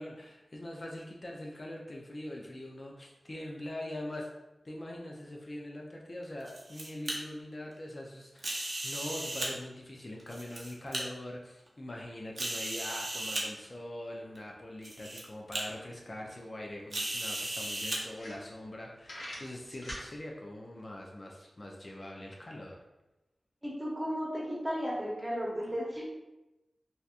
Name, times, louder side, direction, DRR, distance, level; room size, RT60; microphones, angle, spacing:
voice 1, 0.0-4.3 4.6-22.8, left 1 dB, 45° left, -1 dB, 0.4 m, -43 dB
sound 1, 6.2-7.1 8.4-9.5 10.2-11.0 11.7-11.8 12.4-13.4 14.3-14.4 14.8-15.2 15.5-15.6 16.9-18.0, right 1 dB, 60° right, 0.6 m, -36 dB
sound 2, 18.1-18.8 19.0-20.1, left 1 dB, 80° left, 0.8 m, -43 dB
voice 2, 23.6-26.0, equal, 20° right, -4 dB, 0.9 m, -34 dB
2.7 x 2.2 x 2.4 m, 0.99 s
wide cardioid pair, 55°, 0 cm